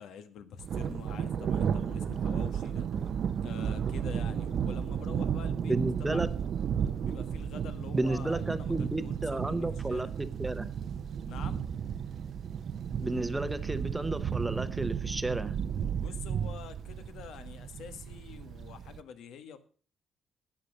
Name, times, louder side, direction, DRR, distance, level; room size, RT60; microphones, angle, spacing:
voice 1, 0.0-6.3 7.0-10.1 11.2-11.6 15.9-19.6, left 8 dB, 85° left, 11 dB, 1.4 m, -47 dB
Thunder, 0.6-19.0, right 8 dB, 50° right, 0.6 m, -33 dB
voice 2, 5.6-6.3 7.9-10.7 13.0-15.6, right 2 dB, 10° right, 12 dB, 0.7 m, -32 dB
12.0 x 8.5 x 6.5 m, 0.42 s
cardioid pair, 170°, 0 cm